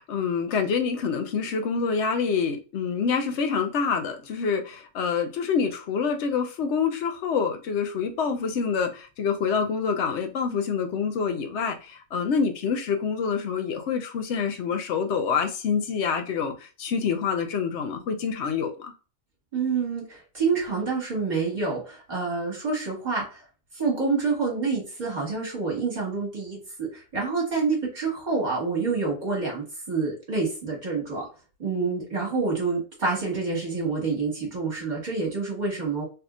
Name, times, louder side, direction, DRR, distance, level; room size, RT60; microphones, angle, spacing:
voice 1, 0.0-18.9, left 6 dB, 60° left, 0.8 m, -26 dB
voice 2, 19.5-23.4 23.7-31.3 31.6-36.0, right 4 dB, 35° right, 1.6 m, -27 dB
3.4 x 2.7 x 2.4 m
omnidirectional pair, 1.5 m